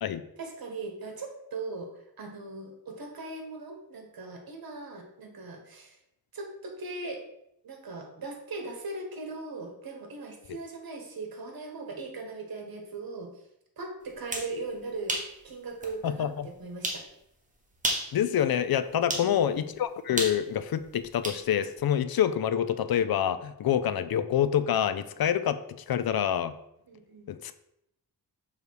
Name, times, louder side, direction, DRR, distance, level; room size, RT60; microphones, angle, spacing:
voice 1, 0.4-6.0 6.3-7.2 7.6-13.4 13.8-17.1 19.2-19.6 26.9-27.3, right 3 dB, 65° right, 3 dB, 1.4 m, -39 dB
sound 1, 14.1-14.5 15.1-15.3 15.8-15.9 16.8-17.1 17.7-18.1 19.1-19.3 20.2-21.4, right 1 dB, 20° right, 1.1 m, -31 dB
voice 2, 18.1-25.6 25.9-26.6 27.3-27.5, left 9 dB, 70° left, 12 dB, 0.5 m, -26 dB
6.7 x 3.4 x 4.6 m, 0.79 s
wide cardioid pair, 115°, 38 cm